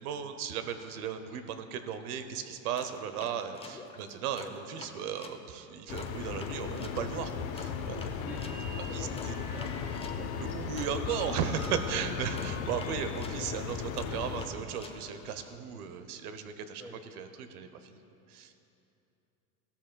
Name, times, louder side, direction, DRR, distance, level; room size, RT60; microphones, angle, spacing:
voice 1, 0.0-8.2 8.9-9.3 10.4-16.8 17.2-18.0 18.3-18.5, right 8 dB, 85° right, 9 dB, 0.9 m, -36 dB
sound 1, 2.8-5.4 6.0-11.8 12.4-15.6, left 4 dB, 15° left, 0.6 m, -48 dB
sound 2, 5.9-14.5, left 6 dB, 55° left, 0.9 m, -36 dB
sound 3, 8.2-13.3, left 3 dB, 90° left, 1.7 m, -47 dB
voice 2, 8.9-10.3 16.8-17.0, equal, 5° right, -1 dB, 1.3 m, -46 dB
14.5 x 13.0 x 2.3 m, 2.8 s
supercardioid pair, 115°, 44 cm